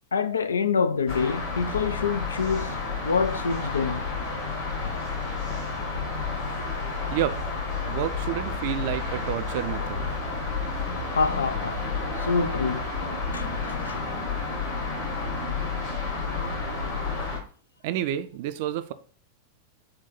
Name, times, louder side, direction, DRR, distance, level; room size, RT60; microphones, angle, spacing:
voice 1, 0.1-2.8 3.0-4.0 4.8-4.9 11.1-12.8 13.3-14.0, left 5 dB, 70° left, 0.3 m, -26 dB
sound 1, 1.1-17.4, left 4 dB, 50° left, 1.9 m, -30 dB
voice 2, 7.9-10.1 17.8-18.9, right 12 dB, 50° right, 0.3 m, -29 dB
4.3 x 2.2 x 3.9 m
figure-of-eight pair, 90°, 0 cm